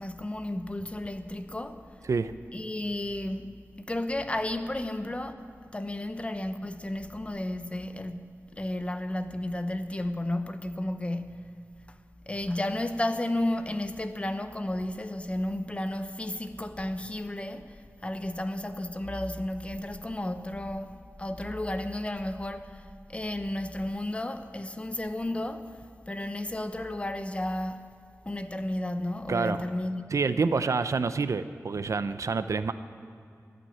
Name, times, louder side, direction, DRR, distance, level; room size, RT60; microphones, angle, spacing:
voice 1, 0.0-1.8 2.5-11.5 12.3-25.8 26.1-27.9 28.2-30.1, left 1 dB, 20° left, 0.8 m, -33 dB
voice 2, 29.3-29.6 30.1-32.7, right 4 dB, 70° right, 0.6 m, -27 dB
14.5 x 9.4 x 9.8 m
wide cardioid pair, 90°, 6 cm